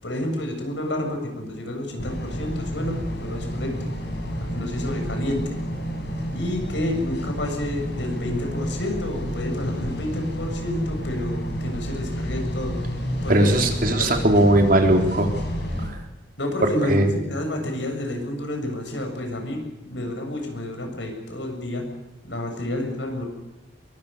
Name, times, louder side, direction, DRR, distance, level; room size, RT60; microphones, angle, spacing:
voice 1, 0.0-3.7 4.5-5.6 6.3-12.8 13.2-14.1 16.4-19.6 19.9-21.8 22.2-23.3, left 1 dB, 80° left, 4 dB, 7.2 m, -29 dB
sound 1, 2.0-15.9, equal, 65° left, 7.6 m, -30 dB
voice 2, 13.3-15.3 16.8-17.1, right 1 dB, 50° right, 4 dB, 3.9 m, -18 dB
25.0 x 22.5 x 6.9 m, 0.96 s
head